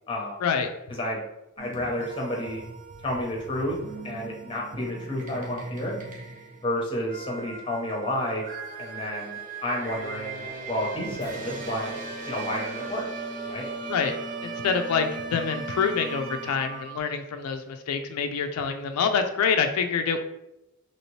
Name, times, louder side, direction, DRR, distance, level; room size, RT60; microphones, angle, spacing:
voice 1, 0.1-0.4 1.0-1.2 1.6-2.6 3.0-3.8 4.0-6.0 6.6-8.4 8.8-11.9 12.2-13.0 13.5-13.7, left 1 dB, 25° left, -1 dB, 0.6 m, -30 dB
sound 1, 1.6-17.0, right 3 dB, 35° right, 0.5 m, -38 dB
voice 2, 13.9-20.2, left 6 dB, 85° left, 7 dB, 0.3 m, -26 dB
2.9 x 2.8 x 3.0 m, 0.89 s
head